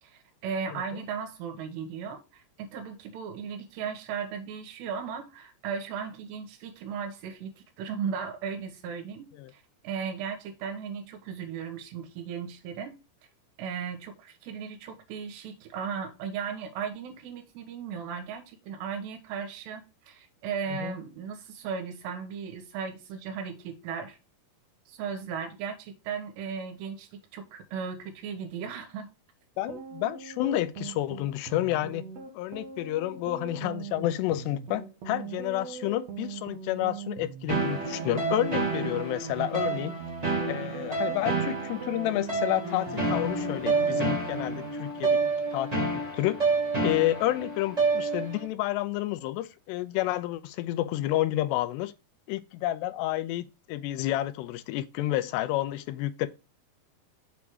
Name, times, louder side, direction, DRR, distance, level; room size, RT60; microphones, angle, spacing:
voice 1, 0.0-13.0 13.6-24.2 24.9-29.1, right 6 dB, 85° right, 3.4 m, -36 dB
voice 2, 29.6-32.0 32.3-40.0 40.5-45.2 45.5-46.4 46.8-51.9 52.3-56.3, left 15 dB, 90° left, 2.8 m, -30 dB
sound 1, 29.6-43.6, right 6 dB, 60° right, 1.9 m, -42 dB
sound 2, 37.5-48.4, right 3 dB, 40° right, 0.5 m, -29 dB
7.3 x 3.5 x 6.3 m
omnidirectional pair, 4.7 m